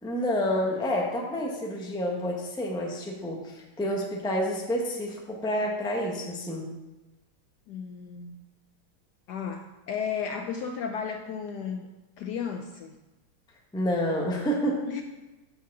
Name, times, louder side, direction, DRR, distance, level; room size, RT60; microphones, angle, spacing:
voice 1, 0.0-6.7 13.7-14.9, equal, 5° left, -1 dB, 0.6 m, -29 dB
voice 2, 7.7-8.4 9.3-11.9 12.2-12.9 14.9-15.0, left 6 dB, 75° left, 4 dB, 1.0 m, -34 dB
6.5 x 5.5 x 5.9 m, 1.1 s
omnidirectional pair, 2.2 m